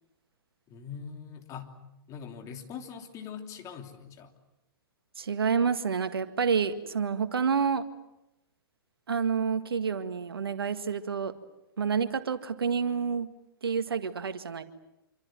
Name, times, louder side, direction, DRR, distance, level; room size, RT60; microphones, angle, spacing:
voice 1, 0.7-1.8 2.1-4.3, left 7 dB, 25° left, 5 dB, 3.2 m, -42 dB
voice 2, 5.2-7.8 9.1-11.3 11.8-13.3 13.6-14.6, right 6 dB, 80° right, 10 dB, 1.9 m, -28 dB
27.0 x 25.5 x 7.7 m, 0.90 s
hypercardioid pair, 125°, 12 cm